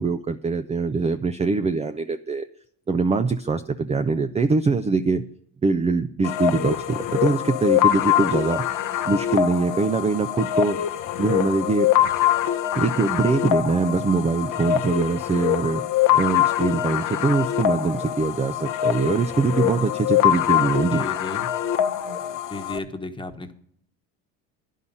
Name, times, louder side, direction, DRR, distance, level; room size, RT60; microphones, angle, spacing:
voice 1, 0.0-2.4 2.9-5.2 5.6-8.6 9.0-10.8 11.2-11.9 12.7-15.8 16.1-21.0, right 4 dB, 15° right, 9 dB, 0.5 m, -23 dB
sound 1, 6.2-22.8, left 11 dB, 50° left, 0.9 m, -24 dB
voice 2, 20.9-21.5 22.5-23.5, left 2 dB, 10° left, 5 dB, 1.3 m, -33 dB
10.5 x 5.5 x 8.5 m, 0.65 s
supercardioid pair, 80°, 40 cm